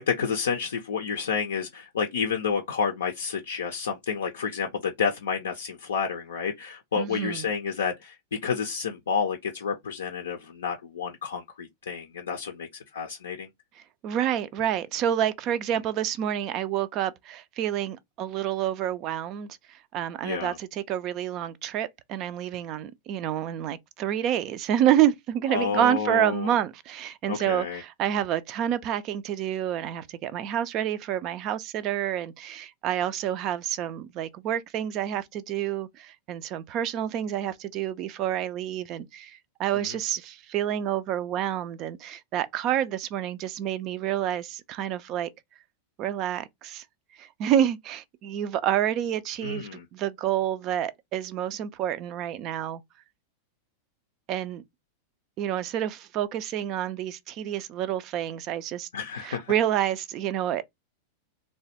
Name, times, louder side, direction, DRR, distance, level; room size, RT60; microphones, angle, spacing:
voice 1, 0.0-8.2 8.4-13.5 20.2-20.6 25.5-26.5 27.3-27.8 39.7-40.0 49.4-49.9 58.9-59.5, left 6 dB, 65° left, 0.4 m, -30 dB
voice 2, 7.0-7.4 14.0-45.3 46.0-46.8 47.2-52.8 54.3-54.6 55.4-58.9 59.2-60.6, right 11 dB, 40° right, 0.3 m, -28 dB
3.2 x 2.2 x 2.7 m
figure-of-eight pair, 90°, 0 cm